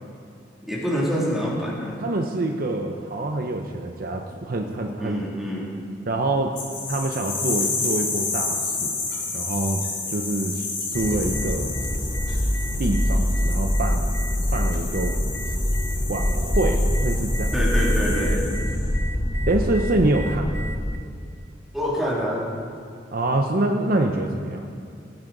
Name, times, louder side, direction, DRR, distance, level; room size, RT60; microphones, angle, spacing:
voice 1, 0.7-2.0 5.0-5.7 17.5-18.5 21.7-22.5, equal, ahead, -6 dB, 2.6 m, -26 dB
voice 2, 2.0-5.2 6.1-6.5 6.9-9.0 9.3-9.8 10.1-11.7 12.8-14.1 14.5-15.2 16.1-17.5 19.5-20.5 23.1-24.7, right 2 dB, 50° right, 3 dB, 0.7 m, -25 dB
sound 1, 6.6-18.9, left 4 dB, 85° left, 3.7 m, -31 dB
sound 2, 10.9-21.0, equal, 15° left, 0.6 m, -24 dB
17.5 x 9.6 x 4.0 m, 2.4 s
head